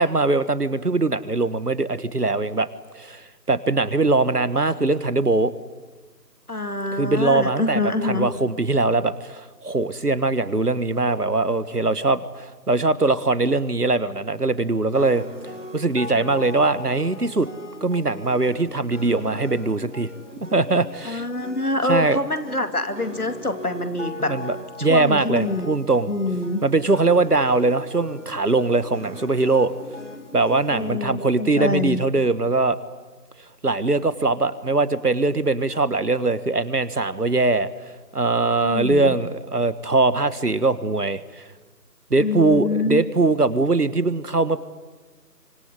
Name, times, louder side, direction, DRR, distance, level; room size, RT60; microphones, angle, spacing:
voice 1, 0.0-2.7 2.9-5.5 7.0-15.2 15.7-17.5 17.8-20.1 20.5-21.2 21.9-22.2 24.2-24.6 24.8-26.1 26.6-29.7 30.3-32.8 33.6-37.7 38.1-41.4 42.1-44.6, right 3 dB, 65° right, 15 dB, 1.5 m, -21 dB
voice 2, 6.5-8.3 21.0-24.4 24.8-25.7 26.1-26.6 30.7-32.0 38.6-39.1 42.2-43.0, left 2 dB, 60° left, 9 dB, 2.6 m, -25 dB
sound 1, 14.9-31.0, left 1 dB, 45° left, 3.3 m, -39 dB
25.0 x 24.0 x 9.7 m, 1.3 s
figure-of-eight pair, 180°, 49 cm